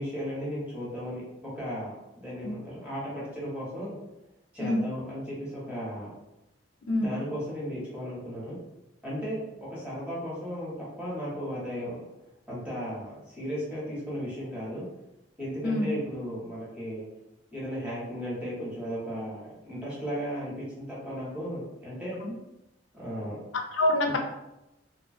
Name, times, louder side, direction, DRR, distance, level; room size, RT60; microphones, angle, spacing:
voice 1, 0.0-3.9 4.5-6.1 6.9-8.6 9.0-10.7 11.0-12.0 12.5-14.8 15.4-17.1 17.5-22.2 22.9-23.4 24.0-24.1, equal, 10° right, -8 dB, 1.0 m, -35 dB
voice 2, 6.9-7.2 15.6-16.0 22.2-22.3 23.7-24.2, left 1 dB, 80° left, 3 dB, 0.4 m, -26 dB
2.6 x 2.4 x 2.5 m, 0.93 s
head